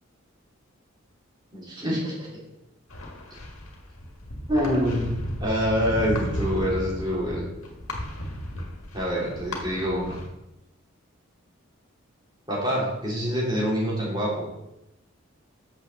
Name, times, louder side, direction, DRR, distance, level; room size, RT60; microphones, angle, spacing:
voice 1, 1.5-2.1 4.5-7.4 8.9-10.2 12.5-14.5, equal, 20° right, -5 dB, 3.2 m, -26 dB
sound 1, 2.9-10.3, left 1 dB, 85° left, 1.7 m, -34 dB
6.7 x 6.2 x 6.8 m, 0.90 s
head